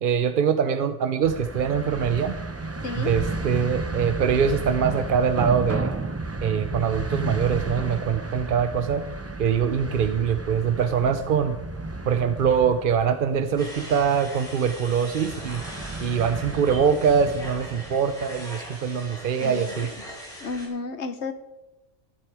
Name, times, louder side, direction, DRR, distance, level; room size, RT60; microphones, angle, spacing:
voice 1, 0.0-2.4 3.0-5.9 6.4-9.0 9.4-11.6 12.0-15.6 16.0-19.9, right 7 dB, 50° right, 9 dB, 0.7 m, -23 dB
sound 1, 1.2-18.5, right 2 dB, 15° right, 0.5 m, -33 dB
sound 2, 13.6-20.7, equal, 5° left, 5.6 m, -41 dB
voice 2, 20.4-21.3, left 4 dB, 60° left, 9 dB, 1.4 m, -31 dB
15.0 x 12.0 x 4.8 m, 1.0 s
omnidirectional pair, 1.3 m